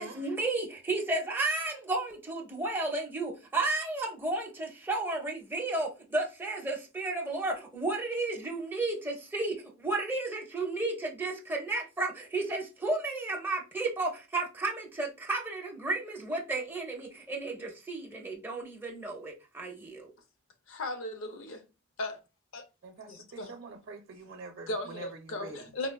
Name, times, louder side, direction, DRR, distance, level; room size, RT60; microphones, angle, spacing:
voice 1, 0.0-20.1, right 2 dB, 10° right, 0.8 m, -33 dB
voice 2, 20.7-21.6 22.0-22.2 22.5-22.6 23.1-23.6 24.7-25.9, left 1 dB, 70° left, 0.6 m, -37 dB
voice 3, 22.8-25.7, right 3 dB, 60° right, 0.6 m, -46 dB
4.2 x 2.4 x 2.2 m
head